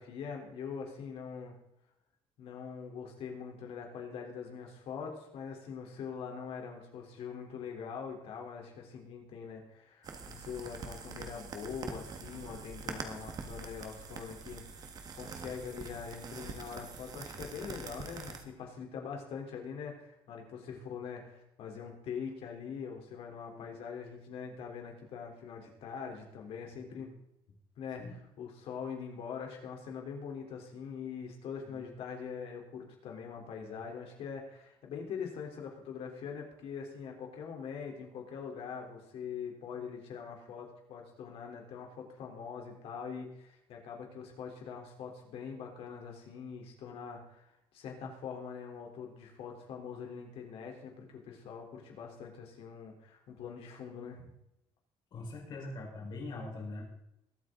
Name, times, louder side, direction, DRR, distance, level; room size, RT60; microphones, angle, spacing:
voice 1, 0.0-1.5 2.4-14.6 15.2-27.1 27.8-28.0 28.4-54.3, left 6 dB, 70° left, 2 dB, 3.8 m, -43 dB
sound 1, 10.0-18.4, right 5 dB, 40° right, 1.6 m, -44 dB
voice 2, 55.1-56.8, left 2 dB, 50° left, -1 dB, 4.8 m, -42 dB
22.0 x 8.7 x 4.0 m, 0.81 s
cardioid pair, 175°, 10 cm